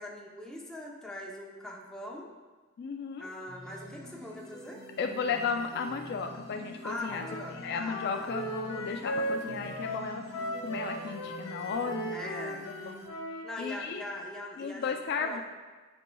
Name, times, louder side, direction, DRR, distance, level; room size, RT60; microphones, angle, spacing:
voice 1, 0.0-2.3 3.2-4.8 6.8-8.3 12.1-12.7 13.4-15.4, left 1 dB, 5° left, -3 dB, 0.8 m, -41 dB
voice 2, 2.8-3.3 5.0-10.2 10.6-12.2 12.9-13.0 13.6-14.0 14.6-15.4, left 5 dB, 55° left, 5 dB, 0.3 m, -34 dB
sound 1, 3.5-13.1, equal, 20° left, 1.6 m, -46 dB
Wind instrument woodwind instrument, 7.1-13.5, equal, 80° left, 0.7 m, -37 dB
8.2 x 5.2 x 2.3 m, 1.3 s
head